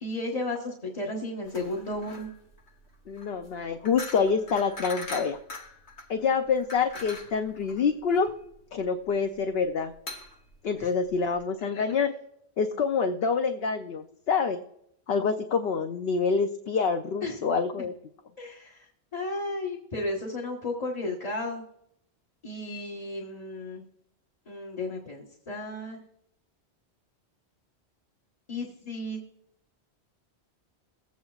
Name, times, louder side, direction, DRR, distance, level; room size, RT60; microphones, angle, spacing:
voice 1, 0.0-2.3 10.8-10.9 11.6-12.0 17.2-17.4 17.8-17.9 18.4-21.6 22.4-23.8 24.5-26.0 28.5-29.2, left 2 dB, 35° left, -1 dB, 1.2 m, -34 dB
sound 1, 1.4-11.4, left 2 dB, 80° left, 1.6 m, -43 dB
voice 2, 3.1-5.4 6.1-8.3 8.7-9.9 10.6-12.1 12.6-14.6 15.1-17.9, left 5 dB, 65° left, 6 dB, 0.8 m, -26 dB
22.0 x 8.4 x 2.4 m, 0.75 s
omnidirectional pair, 1.1 m